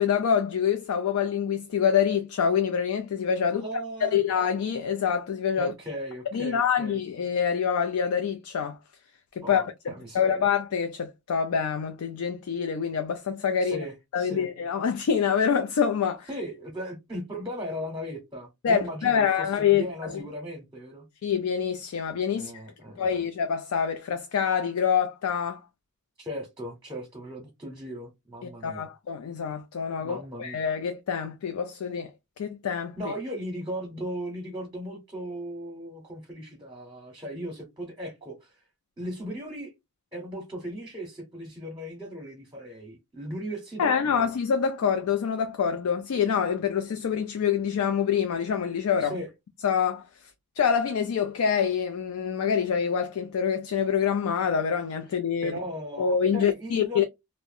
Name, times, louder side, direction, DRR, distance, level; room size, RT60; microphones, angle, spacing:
voice 1, 0.0-3.7 4.0-5.7 6.3-8.8 9.3-9.6 10.1-13.8 14.1-16.3 18.6-20.2 21.2-22.5 23.0-25.6 28.4-32.1 32.4-33.1 43.8-49.2 49.6-50.1 50.6-55.6 56.0-57.0, left 7 dB, 80° left, 0.4 m, -26 dB
voice 2, 3.5-4.2 5.6-7.0 9.4-10.4 13.6-14.5 16.3-21.1 22.3-23.2 26.2-28.9 30.0-30.6 33.0-38.6 39.0-39.7 40.1-44.2 49.0-49.3 55.4-57.0, equal, 20° right, 0.8 m, -37 dB
2.5 x 2.1 x 2.5 m
head